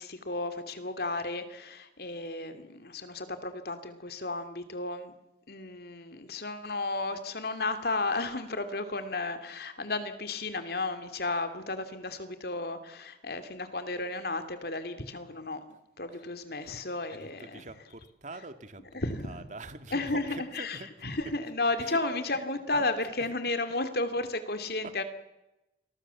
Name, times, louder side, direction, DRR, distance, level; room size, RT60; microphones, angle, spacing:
voice 1, 0.0-5.1 5.5-15.6 16.0-17.6 18.9-19.4 19.9-25.0, left 2 dB, 60° left, 9 dB, 2.9 m, -33 dB
voice 2, 17.1-21.1 21.8-22.0 22.7-22.8 24.8-24.9, right 2 dB, 45° right, 9 dB, 2.0 m, -45 dB
29.0 x 22.5 x 7.2 m, 0.96 s
head